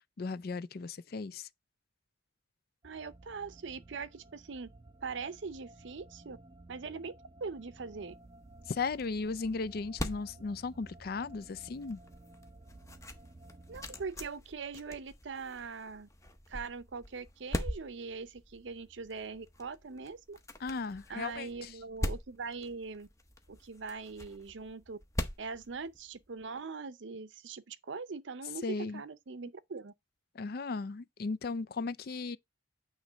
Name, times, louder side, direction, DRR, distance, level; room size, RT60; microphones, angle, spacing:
voice 1, 0.2-1.5 8.7-12.0 20.6-21.7 28.6-29.0 30.3-32.4, left 4 dB, 50° left, 0.4 m, -36 dB
sound 1, 2.8-14.0, right 2 dB, 25° right, 0.4 m, -55 dB
voice 2, 2.8-4.7 5.0-6.4 6.7-7.1 7.4-8.2 13.7-16.1 16.5-20.4 21.1-23.1 23.5-25.0 25.4-29.9, right 4 dB, 70° right, 0.6 m, -42 dB
sound 2, 7.7-26.4, left 1 dB, 15° left, 0.7 m, -43 dB
9.0 x 3.1 x 5.0 m
head